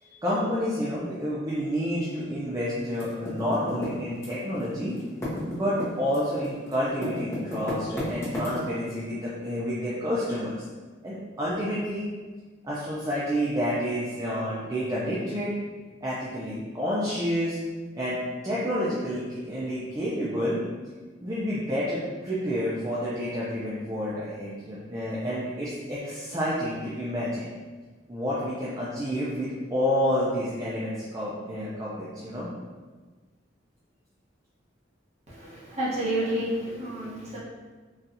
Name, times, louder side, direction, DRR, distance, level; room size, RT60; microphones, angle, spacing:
voice 1, 0.0-5.0 5.5-10.6 11.0-12.1 12.6-15.5 16.0-17.6 17.9-20.7 21.2-27.5 28.1-32.5, equal, 20° right, -8 dB, 0.4 m, -29 dB
Typing, 2.9-4.6 4.9-8.9, left 1 dB, 15° left, 0.7 m, -33 dB
voice 2, 35.3-37.4, right 1 dB, 35° right, -8 dB, 1.0 m, -30 dB
4.0 x 2.3 x 2.6 m, 1.4 s
head